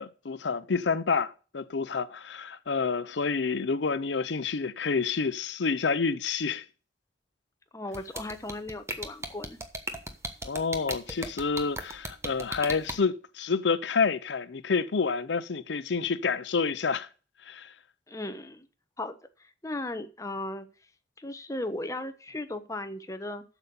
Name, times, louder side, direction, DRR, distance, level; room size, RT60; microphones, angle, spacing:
voice 1, 0.0-6.6 10.4-17.1 17.4-17.7, left 5 dB, 85° left, 0.6 m, -28 dB
voice 2, 7.7-9.6 18.1-18.7 19.0-19.1 19.4-20.7 21.2-23.4, left 2 dB, 20° left, 1.0 m, -36 dB
sound 1, 7.9-12.9, right 2 dB, 15° right, 1.1 m, -35 dB
8.0 x 7.1 x 6.9 m
head